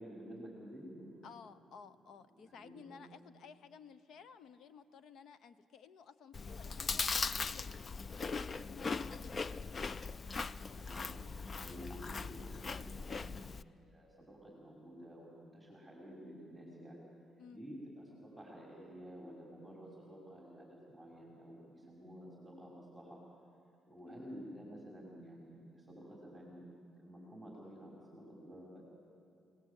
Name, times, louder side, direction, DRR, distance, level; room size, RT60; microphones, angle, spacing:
voice 1, 0.0-1.3 2.5-3.0 9.0-9.2 10.7-11.2 11.6-17.1 17.5-23.2 23.9-26.7 27.0-28.8, equal, ahead, -3 dB, 5.5 m, -51 dB
voice 2, 1.2-9.5 17.4-17.6 24.1-24.4, left 6 dB, 70° left, 13 dB, 1.0 m, -56 dB
Chewing mastication, 6.3-13.6, left 4 dB, 40° left, 0.5 m, -39 dB
29.5 x 18.5 x 8.5 m, 2.7 s
cardioid pair, 90°, 0 cm